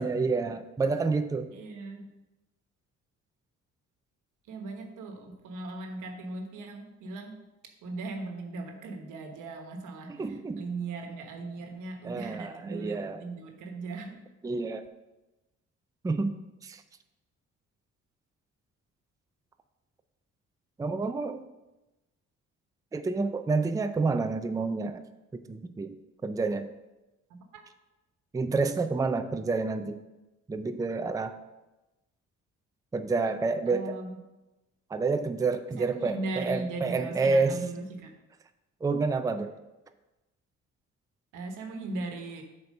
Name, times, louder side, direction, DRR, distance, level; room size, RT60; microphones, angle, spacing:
voice 1, 0.0-1.5 10.1-10.6 12.0-13.2 14.4-14.8 16.0-16.3 16.6-16.8 20.8-21.4 22.9-25.0 25.3-26.0 26.2-26.7 28.3-30.0 30.5-31.4 32.9-33.9 34.9-37.6 38.8-39.5, right 4 dB, 10° right, 8 dB, 0.4 m, -29 dB
voice 2, 1.5-2.1 4.4-7.4 7.8-14.2 27.3-27.6 33.7-34.2 35.7-38.1 41.3-42.4, right 3 dB, 85° right, 4 dB, 1.2 m, -38 dB
7.5 x 4.5 x 5.3 m, 1.0 s
cardioid pair, 90°, 30 cm